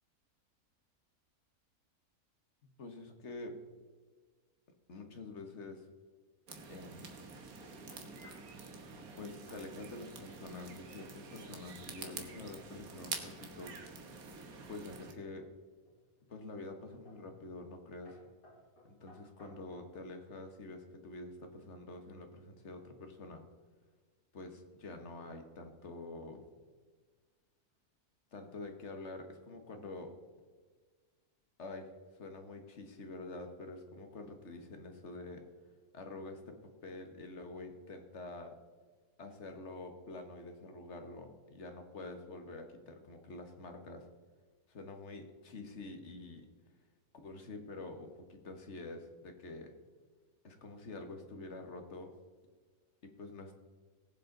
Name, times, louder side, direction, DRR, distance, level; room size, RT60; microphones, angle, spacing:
voice 1, 2.6-3.6 4.9-5.9 6.7-7.1 9.2-13.8 14.7-15.5 16.3-18.2 18.8-23.4 24.3-26.4 28.3-30.2 31.6-35.4 35.9-38.6 39.2-44.0 44.7-46.5 47.2-49.7 50.4-52.1 53.0-53.6, left 2 dB, 50° left, 5 dB, 1.6 m, -47 dB
sound 1, 6.5-15.1, right 4 dB, 70° right, 1.7 m, -47 dB
sound 2, 7.6-8.5 9.0-9.2 9.5-9.6 9.9-10.6 10.9-11.2 14.6-15.3 15.9-16.3 17.1-17.3 17.6-17.8 18.1-19.9, left 1 dB, 70° left, 4.7 m, -61 dB
20.0 x 7.5 x 3.9 m, 1.5 s
omnidirectional pair, 1.6 m